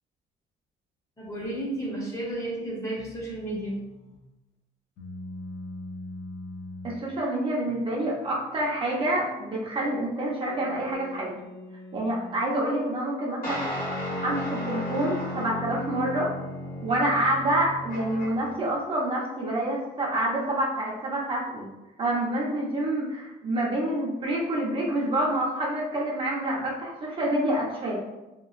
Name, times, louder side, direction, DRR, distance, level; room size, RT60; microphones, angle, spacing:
voice 1, 1.2-3.9, right 1 dB, 20° left, -4 dB, 0.8 m, -32 dB
sound 1, 3.0-4.3 5.0-7.0 7.7-9.7 10.4-12.4, left 2 dB, 70° left, 0.6 m, -43 dB
voice 2, 6.8-11.3 11.9-13.7 14.2-16.3 16.8-21.7 22.0-28.0, right 1 dB, 30° right, -4 dB, 0.6 m, -27 dB
sound 2, 13.4-18.6, left 1 dB, 55° left, 1.0 m, -34 dB
2.9 x 2.2 x 2.4 m, 1.0 s
cardioid pair, 110°, 17 cm